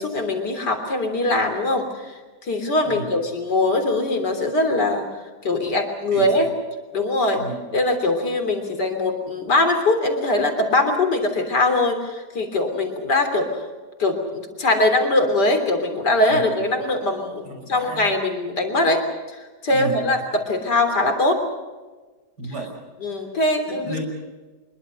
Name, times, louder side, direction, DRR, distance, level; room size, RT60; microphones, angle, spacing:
voice 1, 0.0-2.1 2.4-5.1 5.4-6.5 6.9-7.4 7.7-13.6 14.0-17.4 17.7-21.4 23.0-23.9, left 2 dB, 90° left, 6 dB, 4.0 m, -22 dB
voice 2, 6.1-6.4 7.4-7.6 16.3-16.6 17.4-18.1 19.7-20.2 22.4-22.7 23.7-24.0, right 1 dB, 80° right, 3 dB, 6.7 m, -33 dB
25.0 x 22.0 x 6.6 m, 1.3 s
omnidirectional pair, 1.7 m